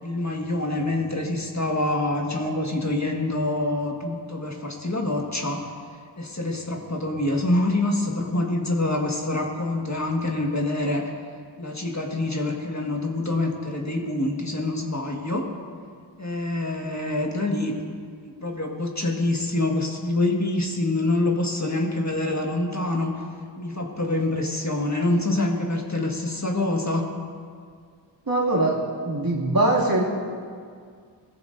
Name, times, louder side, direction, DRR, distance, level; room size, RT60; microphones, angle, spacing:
voice 1, 0.0-5.7 6.2-11.1 11.6-15.5 16.2-18.0 18.2-23.1 23.6-27.1, left 2 dB, 35° left, 0 dB, 1.7 m, -26 dB
voice 2, 28.3-28.8 29.0-30.0, right 2 dB, 50° right, -4 dB, 2.5 m, -21 dB
17.5 x 14.5 x 2.7 m, 2.1 s
wide cardioid pair, 45°, 45 cm